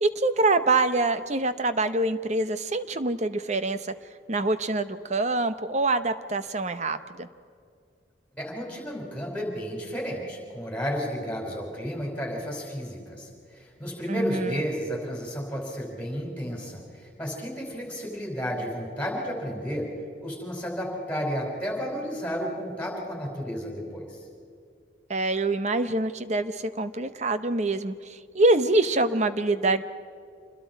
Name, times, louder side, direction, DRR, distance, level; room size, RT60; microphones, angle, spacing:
voice 1, 0.0-3.8 4.3-7.3 14.1-14.6 25.1-29.8, right 2 dB, 40° right, 11 dB, 0.9 m, -25 dB
voice 2, 8.4-19.9 20.2-24.2, equal, 5° left, -1 dB, 5.0 m, -32 dB
27.5 x 21.0 x 4.6 m, 2.3 s
head